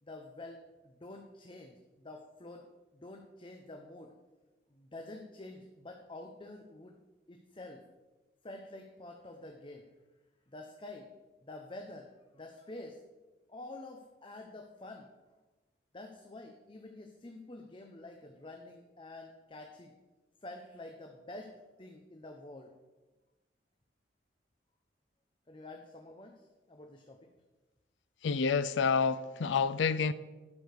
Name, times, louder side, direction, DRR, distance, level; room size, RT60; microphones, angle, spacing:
voice 1, 0.0-2.6 2.9-4.1 4.7-6.9 7.3-7.8 8.4-9.9 10.5-11.1 11.4-13.0 13.5-15.1 15.9-19.9 20.4-21.5 21.8-22.7 25.5-27.2, left 2 dB, 25° left, 0.7 m, -48 dB
voice 2, 28.2-30.1, left 5 dB, 75° left, 0.4 m, -28 dB
11.5 x 5.1 x 6.6 m
head